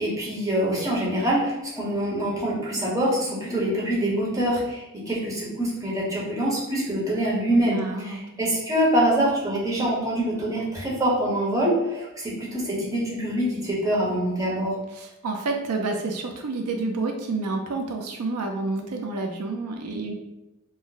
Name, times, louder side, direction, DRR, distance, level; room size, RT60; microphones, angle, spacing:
voice 1, 0.0-14.8, right 1 dB, 15° right, -6 dB, 0.9 m, -25 dB
voice 2, 7.7-8.2 12.8-12.9 14.9-20.1, right 3 dB, 90° right, 3 dB, 0.4 m, -29 dB
2.6 x 2.0 x 3.8 m, 0.96 s
head